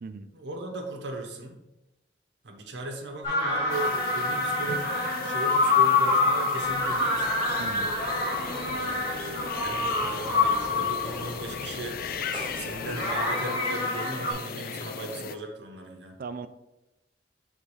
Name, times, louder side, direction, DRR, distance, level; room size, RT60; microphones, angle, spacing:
voice 1, 0.3-1.6 2.4-4.9 5.2-7.3 8.7-12.1 12.5-16.2, right 2 dB, 85° right, 2 dB, 0.9 m, -38 dB
sound 1, 3.2-11.6 12.8-14.3, left 3 dB, 30° left, 2.1 m, -26 dB
sound 2, 3.7-15.4, left 6 dB, 55° left, 0.4 m, -38 dB
sound 3, 6.6-13.2, right 1 dB, 30° right, 1.2 m, -45 dB
voice 2, 7.6-7.9 16.2-16.5, right 4 dB, 55° right, 11 dB, 0.4 m, -38 dB
4.9 x 3.6 x 5.5 m, 0.95 s
head